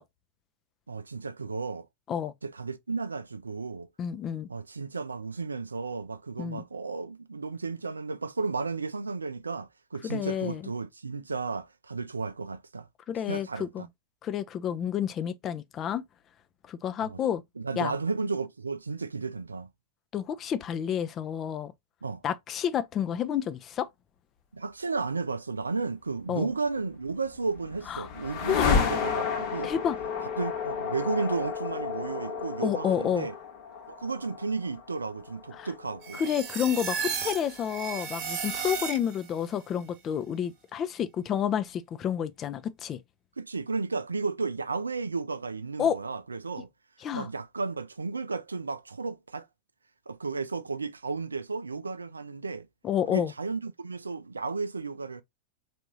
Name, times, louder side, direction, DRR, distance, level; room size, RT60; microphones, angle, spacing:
voice 1, 0.9-1.9 2.4-3.9 4.5-12.9 13.3-13.9 17.0-17.2 17.6-19.7 22.0-22.2 24.5-29.7 30.4-33.3 33.9-36.2 43.4-46.7 47.1-49.5 50.1-52.7 53.1-55.2, right 4 dB, 75° right, 0.4 m, -33 dB
voice 2, 4.0-4.5 6.4-6.6 10.0-10.6 13.1-13.8 14.2-16.0 16.7-17.4 17.8-17.9 20.1-21.7 22.2-23.9 26.3-26.5 27.9-28.1 28.5-28.7 29.6-30.0 32.6-33.3 35.6-35.7 36.2-43.0 45.8-46.0 47.0-47.3 52.8-53.3, left 9 dB, 30° left, 0.4 m, -30 dB
sound 1, 27.1-37.1, left 6 dB, 45° left, 1.0 m, -32 dB
sound 2, 36.0-39.4, right 7 dB, 40° right, 0.7 m, -34 dB
3.5 x 2.5 x 2.9 m
figure-of-eight pair, 90°, 0 cm